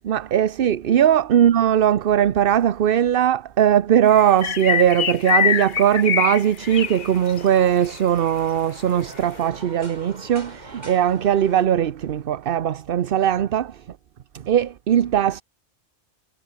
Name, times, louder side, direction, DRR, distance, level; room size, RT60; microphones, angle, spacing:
voice 1, 0.0-13.8 14.4-15.4, right 10 dB, 60° right, 0.9 m, -19 dB
sound 1, 4.1-7.5 7.7-7.9 8.3-8.4, left 8 dB, 50° left, 0.9 m, -23 dB
sound 2, 6.6-11.7, right 1 dB, 40° right, 4.9 m, -43 dB
omnidirectional pair, 1.1 m